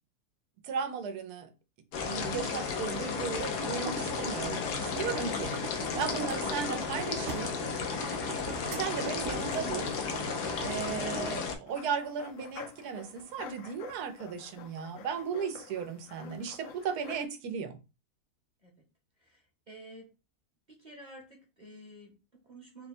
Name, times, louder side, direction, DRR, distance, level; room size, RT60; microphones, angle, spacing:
voice 1, 0.6-1.5 2.0-5.6 5.9-7.5 8.7-9.9 10.6-17.8, right 6 dB, 75° right, 1.2 m, -36 dB
sound 1, 1.9-11.6, left 5 dB, 85° left, 1.3 m, -34 dB
sound 2, 3.6-11.4, right 4 dB, 55° right, 1.1 m, -41 dB
sound 3, 11.7-17.3, left 7 dB, 65° left, 0.9 m, -49 dB
voice 2, 19.2-20.1 20.7-22.9, right 1 dB, 35° right, 1.0 m, -51 dB
3.9 x 2.2 x 4.2 m
omnidirectional pair, 1.7 m